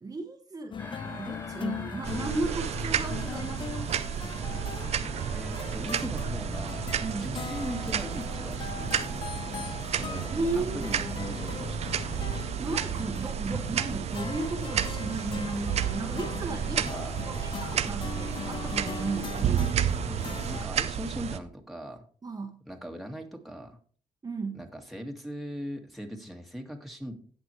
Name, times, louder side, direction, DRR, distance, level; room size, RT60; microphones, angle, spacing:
voice 1, 0.0-4.0 7.0-7.3 10.3-11.1 12.6-16.8 17.3-19.7 22.2-22.6 24.2-24.6, right 3 dB, 30° right, 3 dB, 1.2 m, -35 dB
sound 1, 0.7-20.7, left 6 dB, 45° left, 0.6 m, -39 dB
sound 2, 0.8-14.8, left 2 dB, 25° left, 5.5 m, -48 dB
sound 3, 2.0-21.4, right 9 dB, 70° right, 0.7 m, -32 dB
voice 2, 5.3-6.9 7.2-9.3 9.9-12.0 16.7-17.2 20.0-22.0 22.7-23.8 24.5-27.1, equal, ahead, 2 dB, 2.0 m, -40 dB
17.0 x 6.1 x 3.2 m, 0.43 s
cardioid pair, 85°, 11 cm